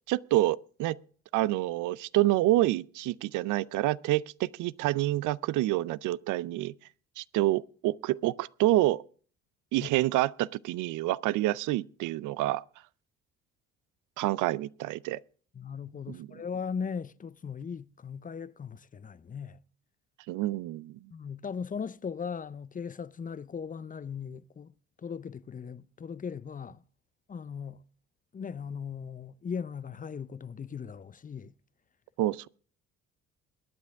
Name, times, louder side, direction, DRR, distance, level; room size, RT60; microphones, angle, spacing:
voice 1, 0.1-1.0 1.3-6.7 7.2-9.0 9.7-12.6 14.2-15.2 16.1-16.3 20.3-21.0 32.2-32.5, right 16 dB, 65° right, 0.5 m, -27 dB
voice 2, 15.6-19.6 21.1-24.7 25.0-26.8 27.3-27.8 28.3-31.5, left 6 dB, 25° left, 0.6 m, -38 dB
22.0 x 9.6 x 3.5 m
hypercardioid pair, 55°, 33 cm